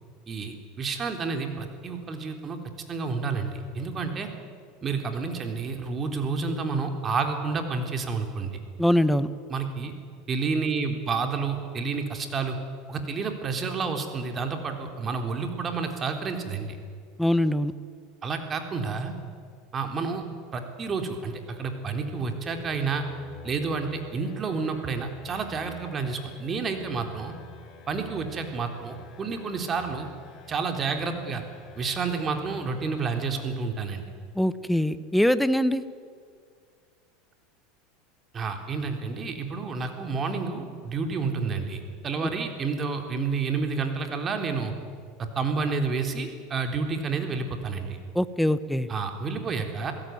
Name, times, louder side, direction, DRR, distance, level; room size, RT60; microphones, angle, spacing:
voice 1, 0.3-2.6 2.9-4.3 4.8-8.6 9.5-10.0 10.3-12.6 12.9-16.8 18.2-19.1 19.7-20.2 20.5-23.0 23.4-27.4 27.9-30.1 30.5-31.4 31.8-34.1 38.3-44.7 45.2-48.0 48.9-49.9, right 4 dB, 30° right, 5 dB, 3.8 m, -30 dB
voice 2, 8.8-9.3 17.2-17.7 34.3-35.8 48.1-48.9, left 1 dB, 5° left, 14 dB, 1.2 m, -23 dB
sound 1, 21.4-34.2, left 8 dB, 35° left, 5.9 m, -49 dB
27.0 x 17.0 x 9.6 m, 2.1 s
hypercardioid pair, 100°, 0 cm